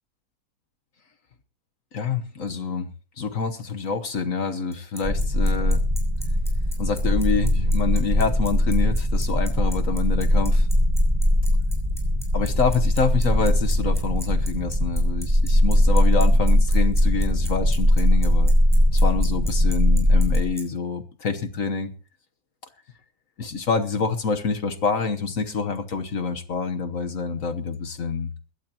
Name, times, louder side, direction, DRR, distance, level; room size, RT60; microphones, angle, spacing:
voice 1, 1.9-2.9 3.2-5.8 6.8-10.7 12.3-18.5 18.9-21.9 23.4-28.3, left 5 dB, 50° left, 1.3 m, -26 dB
Bicycle, 4.7-20.6, equal, ahead, 6.2 m, -39 dB
sound 1, 5.0-20.4, equal, 20° right, 1.5 m, -20 dB
21.0 x 16.5 x 2.9 m
omnidirectional pair, 2.1 m